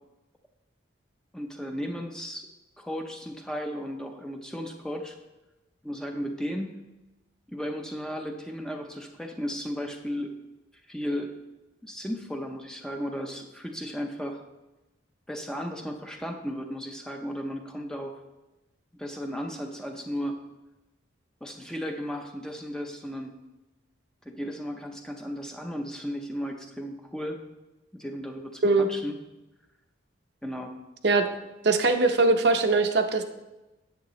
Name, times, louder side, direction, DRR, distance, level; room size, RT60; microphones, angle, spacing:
voice 1, 1.3-2.5 2.8-5.2 5.8-6.7 7.5-10.3 10.9-11.3 11.8-14.4 15.3-18.2 19.0-20.4 21.4-23.3 24.3-27.4 27.9-29.2 30.4-30.8, equal, 5° left, 3 dB, 0.6 m, -35 dB
voice 2, 31.6-33.2, right 3 dB, 60° right, 6 dB, 0.6 m, -21 dB
9.1 x 7.7 x 3.1 m, 1.0 s
head